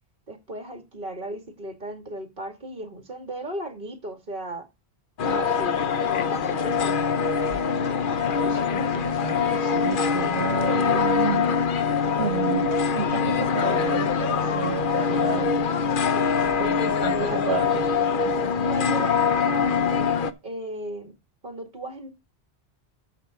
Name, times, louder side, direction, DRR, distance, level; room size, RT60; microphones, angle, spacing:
voice 1, 0.3-4.7 5.3-5.8 6.0-6.7 16.1-17.9 18.6-20.1 20.4-21.1 21.4-22.1, right 1 dB, 50° right, 2.2 m, -36 dB
sound 1, 5.2-20.3, left 6 dB, 55° left, 0.9 m, -23 dB
voice 2, 8.1-11.6 12.2-15.7 16.4-17.8, right 7 dB, 85° right, 1.4 m, -32 dB
9.0 x 6.9 x 5.0 m
omnidirectional pair, 1.1 m